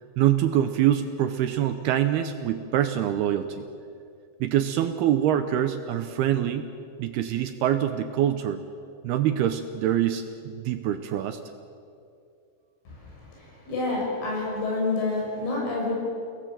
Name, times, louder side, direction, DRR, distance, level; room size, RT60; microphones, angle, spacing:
voice 1, 0.2-3.6 4.4-6.7 7.0-8.6 9.0-11.4, right 11 dB, 80° right, 8 dB, 2.4 m, -25 dB
voice 2, 12.9-15.9, left 3 dB, 85° left, -3 dB, 9.1 m, -29 dB
29.5 x 18.5 x 7.7 m, 2.4 s
omnidirectional pair, 5.4 m